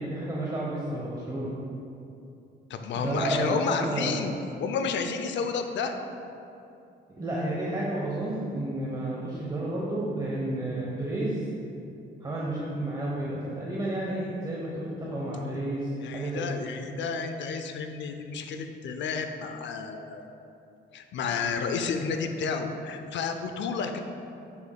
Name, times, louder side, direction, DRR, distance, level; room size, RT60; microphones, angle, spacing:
voice 1, 0.0-1.5 3.0-4.2 7.1-11.5 12.2-16.6, right 1 dB, 20° right, -5 dB, 0.9 m, -31 dB
voice 2, 2.7-4.3 4.6-6.0 16.0-20.2 20.9-24.0, left 5 dB, 65° left, 6 dB, 0.6 m, -31 dB
6.9 x 6.9 x 2.3 m, 2.7 s
cardioid pair, 90°, 20 cm